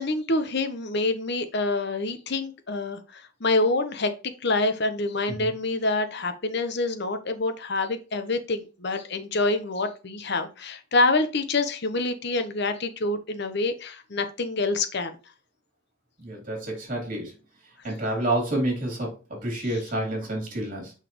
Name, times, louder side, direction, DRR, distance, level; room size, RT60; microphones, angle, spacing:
voice 1, 0.0-4.1 4.4-15.2, left 2 dB, 55° left, 8 dB, 1.0 m, -26 dB
voice 2, 16.2-17.3 17.8-20.9, right 1 dB, 40° right, -1 dB, 3.6 m, -29 dB
6.1 x 5.8 x 3.0 m, 0.33 s
head